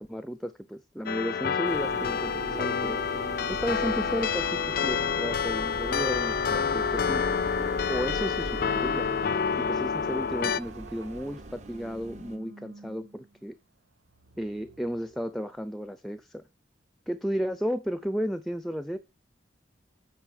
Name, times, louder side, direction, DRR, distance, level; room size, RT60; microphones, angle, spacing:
voice 1, 0.0-3.0 3.5-7.2 7.9-9.1 9.6-13.5 14.4-16.4 17.1-19.0, equal, ahead, 0.5 m, -33 dB
sound 1, 1.1-10.6, left 6 dB, 55° left, 0.4 m, -28 dB
sound 2, 1.6-12.4, right 2 dB, 40° right, 1.0 m, -40 dB
sound 3, 7.9-15.7, right 3 dB, 85° right, 0.9 m, -51 dB
9.1 x 5.0 x 6.4 m
head